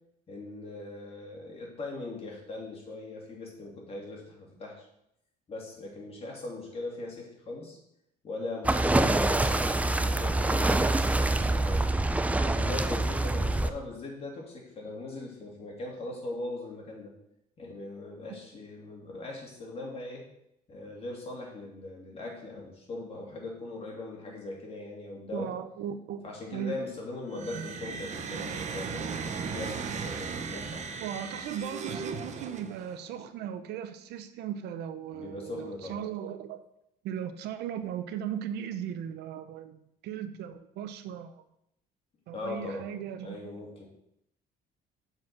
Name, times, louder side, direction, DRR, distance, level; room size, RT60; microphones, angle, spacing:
voice 1, 0.3-4.9 5.5-7.8 8.2-11.8 12.3-17.1 17.6-20.2 20.7-25.5 26.2-30.9 35.1-36.0 42.3-42.9 43.2-43.9, left 2 dB, 35° left, -2 dB, 2.9 m, -40 dB
sound 1, 8.6-13.7, right 2 dB, 10° right, 0.5 m, -25 dB
voice 2, 25.3-26.2 26.5-26.7 31.0-36.6 37.0-41.3 42.3-43.4, right 9 dB, 80° right, 10 dB, 0.7 m, -37 dB
sound 2, 27.3-33.0, right 5 dB, 45° right, 0.9 m, -36 dB
7.6 x 4.7 x 6.0 m, 0.78 s
cardioid pair, 110°, 17 cm